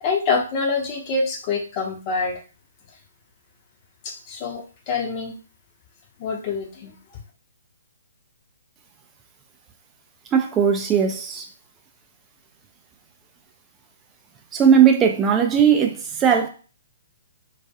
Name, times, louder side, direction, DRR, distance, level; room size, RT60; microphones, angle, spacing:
voice 1, 0.0-2.4 4.0-5.3 6.2-7.2, left 4 dB, 30° left, 0.7 m, -26 dB
voice 2, 10.3-11.5 14.5-16.5, right 7 dB, 15° right, 0.4 m, -18 dB
2.3 x 2.2 x 2.7 m
figure-of-eight pair, 125°, 0 cm